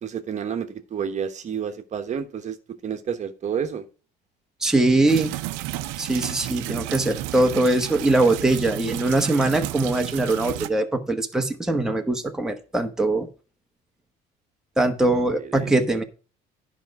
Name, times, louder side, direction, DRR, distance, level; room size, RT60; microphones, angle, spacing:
voice 1, 0.0-2.6 2.8-3.9 15.3-15.8, right 7 dB, 40° right, 1.1 m, -30 dB
voice 2, 4.6-5.3 6.0-13.3 14.8-16.0, right 2 dB, 5° right, 1.0 m, -22 dB
sound 1, 5.1-10.7, right 15 dB, 85° right, 0.7 m, -32 dB
10.5 x 5.3 x 4.7 m
cardioid pair, 115°, 20 cm